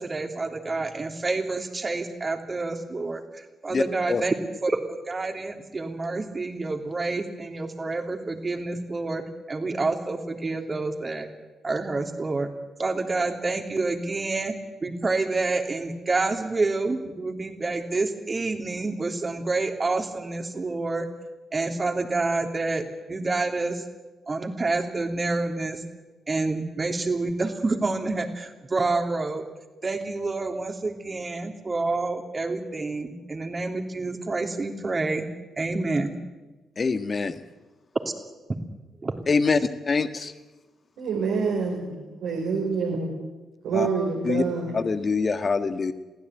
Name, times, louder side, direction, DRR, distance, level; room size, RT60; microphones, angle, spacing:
voice 1, 0.0-4.3 4.6-11.3 11.6-12.5 12.8-21.1 21.5-23.8 24.3-25.8 26.3-29.4 29.8-35.2 35.6-36.1 39.0-39.1, right 3 dB, 35° right, 4 dB, 3.4 m, -28 dB
voice 2, 3.7-4.2 36.8-37.3 39.3-40.3 43.7-43.9 44.2-44.4 44.7-45.9, left 4 dB, 40° left, 10 dB, 1.7 m, -24 dB
voice 3, 41.0-41.8 42.2-43.1 43.6-44.7, right 5 dB, 70° right, 0 dB, 4.2 m, -26 dB
22.5 x 16.0 x 9.5 m, 1.2 s
hypercardioid pair, 40°, 0 cm